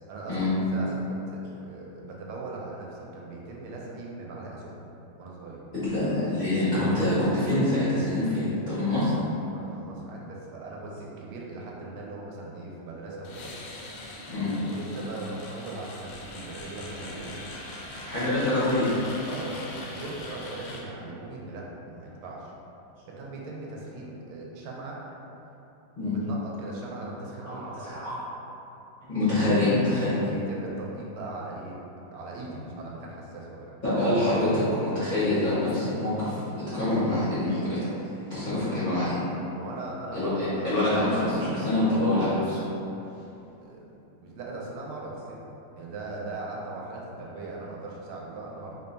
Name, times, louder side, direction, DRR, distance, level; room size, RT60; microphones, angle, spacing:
voice 1, 0.1-4.9 5.2-5.6 9.5-13.5 14.4-17.4 18.1-18.4 19.3-22.5 23.1-25.0 26.0-28.0 30.2-31.8 32.1-33.7 39.5-40.4 40.9-41.3 43.6-43.8 44.2-45.4 45.8-48.8, right 2 dB, 85° right, -3 dB, 1.5 m, -39 dB
voice 2, 5.7-9.1 14.3-14.5 18.0-18.9 26.0-26.1 27.4-28.1 29.1-30.2 33.8-36.4 36.7-37.8 38.3-39.2 40.1-42.6, left 1 dB, 55° left, -14 dB, 0.5 m, -25 dB
sound 1, 13.2-20.8, left 1 dB, 85° left, 1.5 m, -41 dB
3.7 x 2.2 x 3.9 m, 3.0 s
omnidirectional pair, 2.4 m